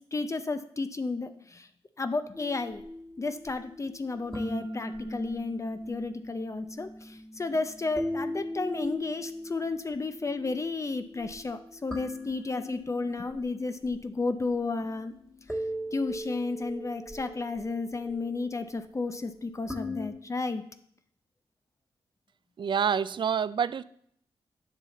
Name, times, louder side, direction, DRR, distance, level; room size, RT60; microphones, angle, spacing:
voice 1, 0.0-1.7 2.0-2.8 3.2-15.1 15.9-20.6, left 3 dB, 30° left, 10 dB, 0.5 m, -32 dB
sound 1, 2.3-20.1, left 1 dB, 5° left, 1.4 m, -39 dB
voice 2, 22.6-23.8, right 7 dB, 55° right, 17 dB, 0.4 m, -27 dB
9.6 x 5.7 x 4.1 m, 0.67 s
cardioid pair, 80°, 10 cm